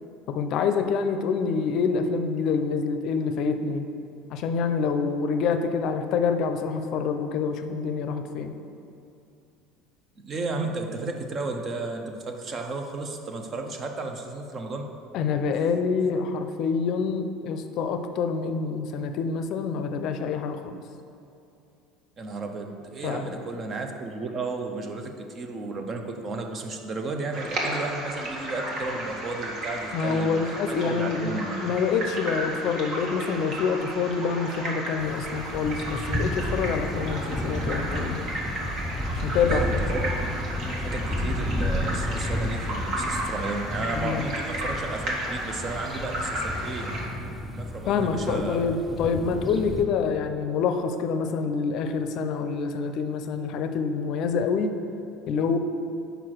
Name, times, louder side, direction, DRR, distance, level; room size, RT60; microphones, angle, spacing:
voice 1, 0.3-3.9 4.3-8.6 15.1-20.8 23.0-23.4 29.9-38.3 39.2-39.6 43.9-44.2 47.9-54.7 55.3-55.6, left 5 dB, 60° left, 8 dB, 0.5 m, -26 dB
voice 2, 10.2-14.9 22.2-31.7 39.5-40.1 40.8-46.9 47.5-48.6, right 3 dB, 40° right, 4 dB, 0.7 m, -33 dB
sound 1, 27.3-47.0, right 1 dB, 55° right, 1.4 m, -33 dB
sound 2, 35.0-49.8, left 1 dB, ahead, 0.7 m, -32 dB
5.1 x 4.7 x 6.0 m, 2.7 s
supercardioid pair, 100°, 0 cm